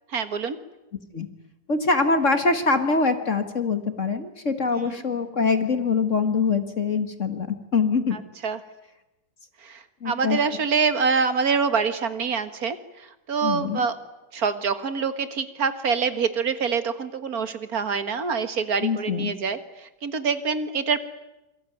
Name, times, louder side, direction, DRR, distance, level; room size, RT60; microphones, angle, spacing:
voice 1, 0.1-0.6 4.7-5.0 8.1-8.6 9.6-14.0 14.3-21.0, right 5 dB, 55° right, 11 dB, 2.0 m, -26 dB
voice 2, 1.7-8.2 10.0-10.4 13.4-13.8 18.8-19.3, left 4 dB, 45° left, 9 dB, 2.0 m, -24 dB
27.0 x 24.0 x 9.3 m, 0.95 s
omnidirectional pair, 1.9 m